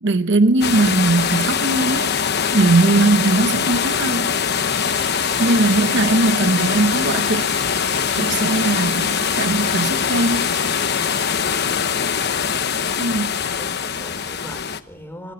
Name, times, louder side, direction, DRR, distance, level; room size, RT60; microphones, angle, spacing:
voice 1, 0.0-4.4 5.4-7.5 8.1-10.6 13.0-13.4, right 2 dB, 65° right, 1.0 m, -19 dB
sound 1, 0.6-14.8, left 7 dB, 60° left, 1.1 m, -22 dB
sound 2, 4.7-11.2, right 5 dB, 35° right, 3.8 m, -37 dB
voice 2, 13.6-15.3, equal, 10° left, 4.9 m, -39 dB
29.0 x 20.5 x 7.0 m
head